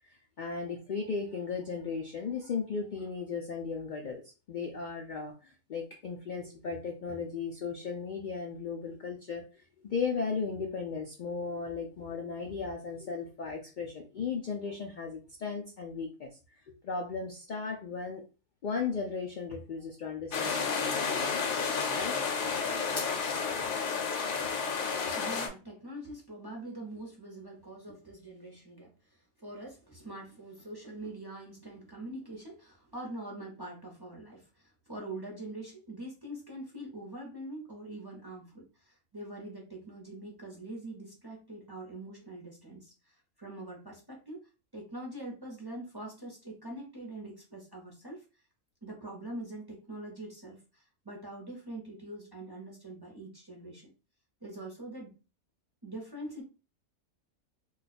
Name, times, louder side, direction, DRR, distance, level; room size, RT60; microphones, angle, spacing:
voice 1, 0.0-4.2 4.5-18.2 18.6-21.6 21.9-22.2 24.4-24.5, left 5 dB, 80° left, 1 dB, 0.4 m, -36 dB
sound 1, 20.3-25.5, left 5 dB, 65° left, 1.0 m, -31 dB
voice 2, 25.1-44.4 44.7-48.2 48.8-53.9 54.4-55.1 55.8-56.4, right 1 dB, 25° right, -2 dB, 0.6 m, -44 dB
2.3 x 2.3 x 4.0 m, 0.33 s
omnidirectional pair, 1.4 m